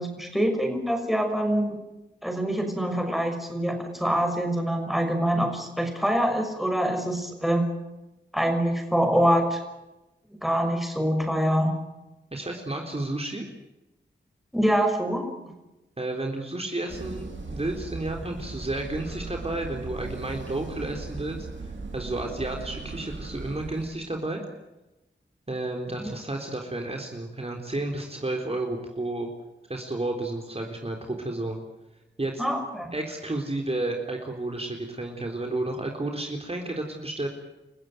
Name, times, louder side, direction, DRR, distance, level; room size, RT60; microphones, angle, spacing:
voice 1, 0.0-1.8 2.2-7.7 8.3-9.6 10.4-11.8 14.5-15.3 26.0-26.1 32.4-33.0, equal, ahead, 4 dB, 6.1 m, -25 dB
voice 2, 12.3-13.4 16.0-24.4 25.5-29.3 29.7-31.6 32.2-32.4 32.9-37.3, right 2 dB, 30° right, 2 dB, 4.0 m, -32 dB
sound 1, 16.9-23.9, right 3 dB, 75° right, 5.3 m, -38 dB
29.5 x 15.5 x 9.3 m, 0.99 s
wide cardioid pair, 75°, 19 cm